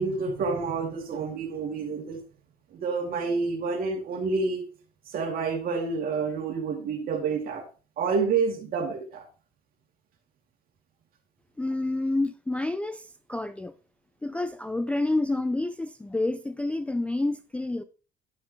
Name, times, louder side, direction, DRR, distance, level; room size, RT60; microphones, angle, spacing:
voice 1, 0.0-2.2 2.7-4.7 5.1-7.6 8.0-9.3, right 4 dB, 60° right, 2.2 m, -28 dB
voice 2, 11.6-13.7 14.2-17.8, left 2 dB, 5° left, 0.3 m, -29 dB
10.5 x 5.4 x 2.9 m
cardioid pair, 110°, 17 cm